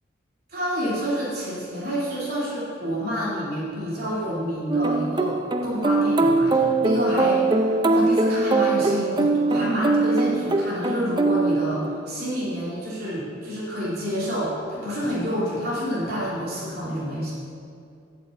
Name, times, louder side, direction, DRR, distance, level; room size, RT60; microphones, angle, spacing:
voice 1, 0.5-5.4 5.6-17.3, equal, 55° right, -7 dB, 2.9 m, -28 dB
sound 1, 4.7-12.2, right 3 dB, 20° right, 0.5 m, -22 dB
8.5 x 6.8 x 8.3 m, 2.4 s
head